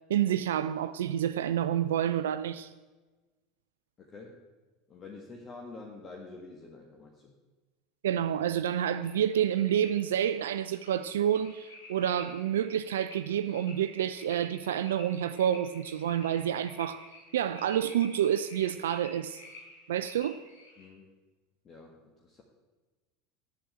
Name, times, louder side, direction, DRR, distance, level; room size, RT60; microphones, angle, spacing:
voice 1, 0.1-2.7 8.0-17.0 17.3-19.4 19.9-20.4, right 10 dB, 70° right, 0.3 m, -29 dB
voice 2, 4.0-4.4 4.9-7.3 20.8-21.1 21.6-22.4, left 3 dB, 30° left, 1.5 m, -47 dB
sound 1, 8.9-20.9, left 2 dB, 75° left, 2.8 m, -51 dB
8.7 x 7.6 x 8.8 m
figure-of-eight pair, 75°, 0 cm